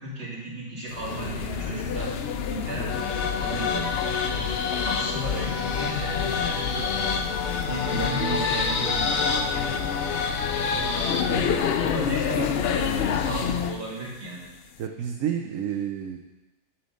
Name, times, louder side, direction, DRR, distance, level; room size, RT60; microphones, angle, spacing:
voice 1, 0.0-2.1 2.5-4.0 4.7-10.0 11.8-14.5, right 2 dB, 55° right, -5 dB, 2.6 m, -34 dB
sound 1, 0.9-13.9, left 8 dB, 65° left, 0.6 m, -29 dB
sound 2, 2.9-11.6, left 5 dB, 85° left, 1.2 m, -28 dB
voice 2, 4.3-4.7 10.7-10.9 11.3-11.6 14.8-16.2, right 9 dB, 75° right, 4 dB, 1.0 m, -31 dB
7.3 x 5.6 x 6.4 m, 1.1 s
omnidirectional pair, 1.4 m